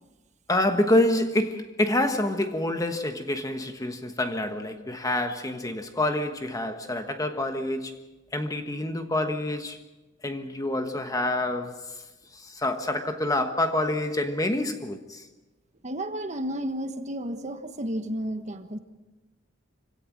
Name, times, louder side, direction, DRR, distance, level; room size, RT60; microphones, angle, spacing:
voice 1, 0.5-8.0 8.3-9.8 10.2-12.0 12.3-15.2, left 1 dB, 20° left, 1.3 m, -27 dB
voice 2, 15.8-18.8, right 1 dB, 40° right, 1.4 m, -32 dB
26.0 x 17.0 x 6.2 m
head